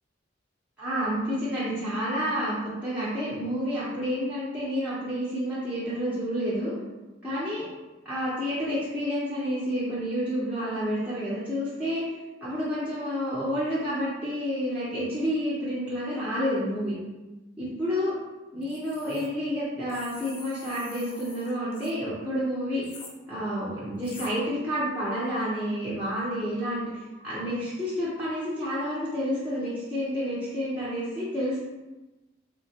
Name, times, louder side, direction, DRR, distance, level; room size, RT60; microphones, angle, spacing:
voice 1, 0.8-6.7 7.2-7.6 8.0-12.0 12.4-16.9 17.6-18.1 18.5-22.8 23.3-26.9 27.2-31.6, equal, 5° right, -11 dB, 0.7 m, -29 dB
sound 1, 18.6-19.3 19.9-21.9 22.8-23.1 24.0-24.3, left 4 dB, 30° left, 0.3 m, -46 dB
3.6 x 2.2 x 2.8 m, 1.1 s
head